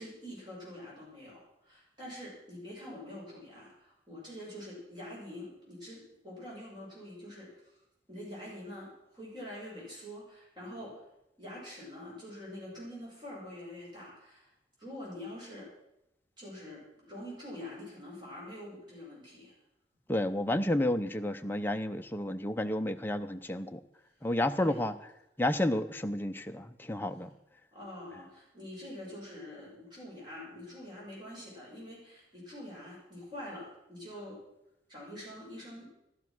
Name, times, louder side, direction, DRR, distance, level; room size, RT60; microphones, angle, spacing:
voice 1, 0.0-7.8 8.1-11.0 11.4-14.5 14.8-15.7 16.4-19.5 24.2-24.3 24.6-24.8 27.7-34.4 34.9-35.9, left 1 dB, 25° right, -6 dB, 6.7 m, -45 dB
voice 2, 20.1-23.8 24.2-24.9 25.4-27.3, left 1 dB, 10° left, 6 dB, 0.6 m, -31 dB
14.0 x 12.0 x 6.1 m, 0.86 s
head